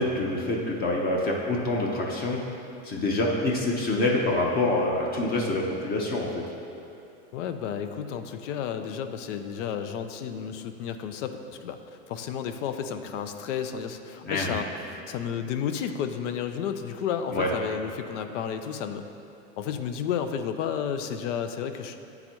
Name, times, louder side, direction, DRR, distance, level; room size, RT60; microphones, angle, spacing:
voice 1, 0.0-2.4 2.8-6.3 14.2-14.6 17.3-17.5, left 2 dB, 25° left, -2 dB, 0.6 m, -26 dB
voice 2, 7.3-11.8 12.1-19.0 19.6-22.0, left 8 dB, 80° left, 8 dB, 0.6 m, -32 dB
9.8 x 3.9 x 2.9 m, 2.7 s
supercardioid pair, 130°, 36 cm